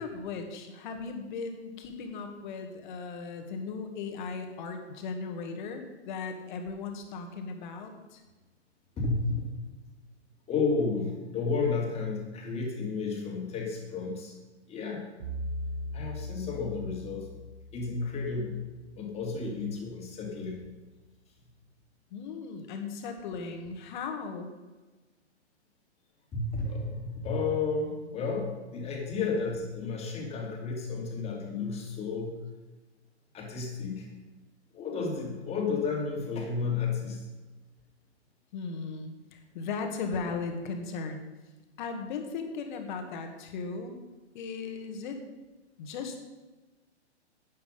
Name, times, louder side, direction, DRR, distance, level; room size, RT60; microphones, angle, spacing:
voice 1, 0.0-8.2 22.1-24.5 38.5-41.2 41.8-44.0 44.3-45.2 45.8-46.2, left 4 dB, 40° left, 5 dB, 2.0 m, -37 dB
voice 2, 9.0-9.5 10.5-14.3 14.7-15.0 15.9-17.3 17.7-18.6 19.0-20.7 26.3-32.4 33.3-34.1 34.7-37.3, left 4 dB, 20° left, 0 dB, 2.7 m, -32 dB
Bowed string instrument, 15.2-19.4, left 1 dB, 70° right, 2.1 m, -40 dB
12.0 x 9.3 x 5.4 m, 1.2 s
figure-of-eight pair, 120°, 35 cm